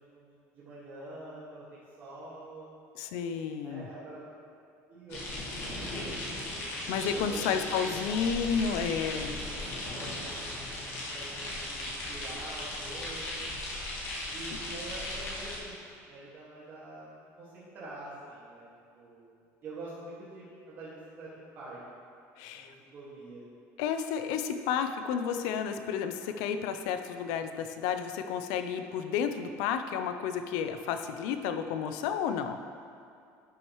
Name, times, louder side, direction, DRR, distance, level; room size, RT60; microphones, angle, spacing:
voice 1, 0.0-2.7 3.6-4.3 4.9-6.3 6.8-7.9 9.1-13.5 14.3-18.7 18.9-19.3 19.6-21.8 22.5-23.4, right 2 dB, 35° right, -11 dB, 1.9 m, -46 dB
voice 2, 3.0-3.8 6.9-9.3 14.7-14.8 22.4-22.7 23.8-32.6, left 7 dB, 90° left, 8 dB, 0.5 m, -31 dB
sound 1, 5.1-15.6, left 1 dB, 50° left, 1.7 m, -37 dB
11.0 x 6.1 x 3.1 m, 2.5 s
cardioid pair, 180°, 6 cm